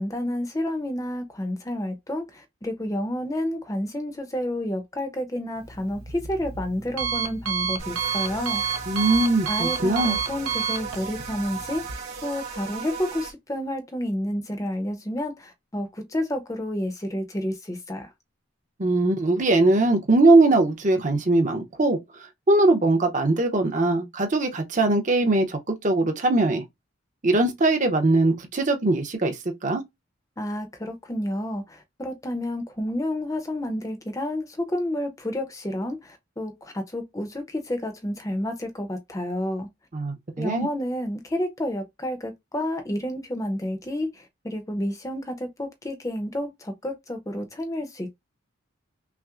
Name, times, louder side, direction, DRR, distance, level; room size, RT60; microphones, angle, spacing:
voice 1, 0.0-8.6 9.5-18.1 30.4-39.7 40.4-48.1, left 1 dB, 15° left, 0.6 m, -30 dB
Alarm, 5.6-12.0, right 7 dB, 90° right, 0.6 m, -30 dB
sound 1, 7.8-13.3, right 5 dB, 60° right, 1.9 m, -36 dB
voice 2, 8.9-10.2 18.8-22.0 22.5-26.6 27.2-29.4 29.6-29.8 39.9-40.7, right 2 dB, 35° right, 0.7 m, -21 dB
5.6 x 2.0 x 2.4 m
head